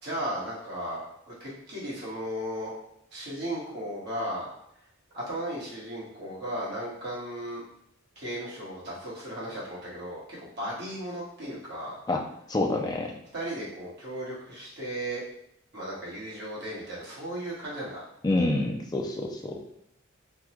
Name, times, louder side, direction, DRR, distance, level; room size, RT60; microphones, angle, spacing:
voice 1, 0.0-2.7 3.1-4.5 5.1-7.6 8.1-12.0 13.3-15.2 15.7-18.0, right 1 dB, 55° right, -7 dB, 1.4 m, -35 dB
voice 2, 12.5-13.1 18.2-19.6, left 2 dB, 20° left, 1 dB, 0.4 m, -27 dB
3.5 x 2.2 x 3.0 m, 0.74 s
head